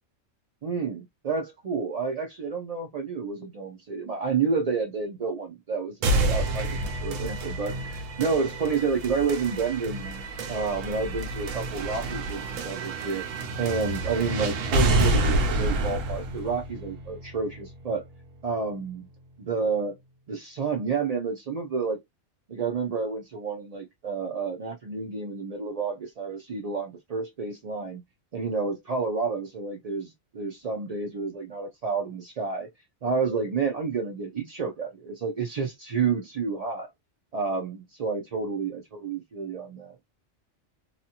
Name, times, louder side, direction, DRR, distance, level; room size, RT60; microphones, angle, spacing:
voice 1, 0.6-13.2 13.6-18.0 18.4-19.1 19.4-20.0 20.3-22.0 22.5-28.0 28.3-32.7 33.0-36.9 37.3-40.0, right 5 dB, 60° right, 0.4 m, -30 dB
sound 1, 6.0-18.0, right 2 dB, 90° right, 1.0 m, -28 dB
2.8 x 2.4 x 2.7 m
omnidirectional pair, 1.3 m